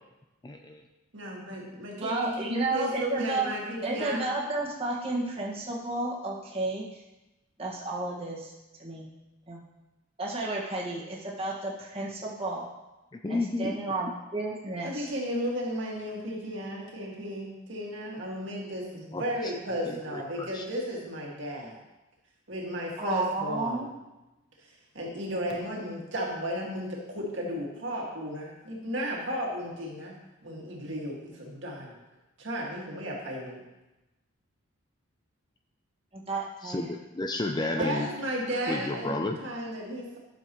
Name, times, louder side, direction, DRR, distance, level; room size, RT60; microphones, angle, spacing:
voice 1, 0.4-0.8 13.1-13.8 19.1-19.2 19.8-20.6 36.6-38.1 38.7-39.4, left 2 dB, 20° left, 5 dB, 0.4 m, -32 dB
voice 2, 1.1-4.3 14.8-21.8 22.5-23.9 24.6-30.1 30.4-31.9 32.4-33.6 37.8-40.2, equal, 60° right, -3 dB, 2.0 m, -34 dB
voice 3, 2.0-3.5 3.8-7.0 7.6-8.5 8.8-9.1 9.5-9.6 10.2-12.6 13.3-15.1 23.0-23.9 36.1-36.9 37.7-37.8, right 2 dB, 25° right, -4 dB, 1.7 m, -32 dB
11.5 x 7.1 x 3.1 m, 1.0 s
head